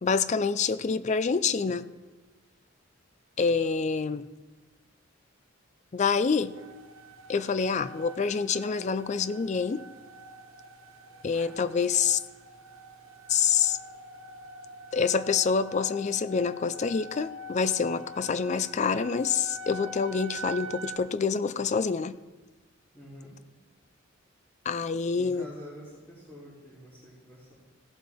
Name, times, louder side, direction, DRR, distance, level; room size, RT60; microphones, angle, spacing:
voice 1, 0.0-1.9 3.4-4.3 5.9-6.6 7.3-9.9 11.2-12.2 13.3-13.8 14.9-22.2 24.7-25.5, left 5 dB, 35° left, 14 dB, 0.4 m, -27 dB
sound 1, 6.3-21.0, equal, 80° right, 1.3 m, -45 dB
voice 2, 22.9-23.3 25.1-27.5, equal, 15° left, -11 dB, 3.3 m, -47 dB
17.0 x 7.6 x 3.5 m, 1.2 s
head